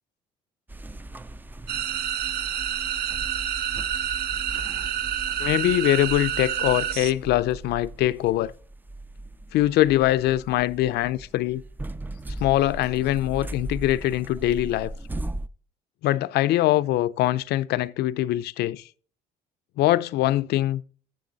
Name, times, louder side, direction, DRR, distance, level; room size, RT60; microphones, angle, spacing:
sound 1, 0.7-15.5, right 1 dB, 10° right, 0.4 m, -38 dB
sound 2, 1.7-7.1, right 10 dB, 70° right, 0.7 m, -28 dB
voice 1, 5.4-8.5 9.5-11.6 12.4-14.9 16.0-18.8 19.8-20.8, left 14 dB, 75° left, 0.5 m, -23 dB
14.5 x 6.3 x 4.0 m
cardioid pair, 110°, 17 cm